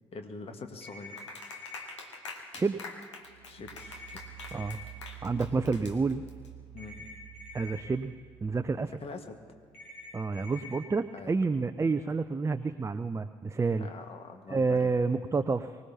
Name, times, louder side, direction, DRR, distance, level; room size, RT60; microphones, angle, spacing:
voice 1, 0.1-1.2 3.5-4.2 6.7-7.1 9.0-9.4 11.1-11.4 13.8-14.9, left 4 dB, 40° left, 5 dB, 1.7 m, -44 dB
sound 1, 0.8-1.8 3.8-4.8 6.8-7.8 9.7-10.7, left 3 dB, 70° left, 3.4 m, -47 dB
Clapping, 1.2-6.5, left 4 dB, 85° left, 1.1 m, -45 dB
voice 2, 2.5-2.9 4.5-4.8 5.2-6.2 7.5-8.1 8.4-8.9 10.1-13.9 14.5-15.9, right 4 dB, 20° right, 9 dB, 0.6 m, -29 dB
sound 2, 3.2-10.9, right 13 dB, 80° right, 0.5 m, -50 dB
24.0 x 18.5 x 2.9 m, 2.1 s
figure-of-eight pair, 45°, 15 cm